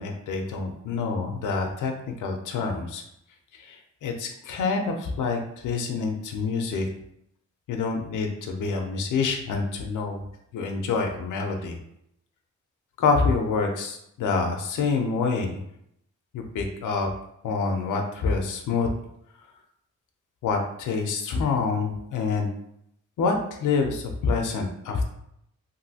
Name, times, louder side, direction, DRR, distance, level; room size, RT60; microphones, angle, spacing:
voice 1, 0.0-1.9 2.2-3.0 3.5-6.9 7.7-10.2 10.5-11.8 13.0-15.6 16.3-17.1 17.4-18.9 20.4-22.5 23.2-25.0, left 4 dB, 90° left, 3 dB, 0.5 m, -27 dB
3.0 x 2.6 x 2.7 m, 0.76 s
wide cardioid pair, 135°, 30 cm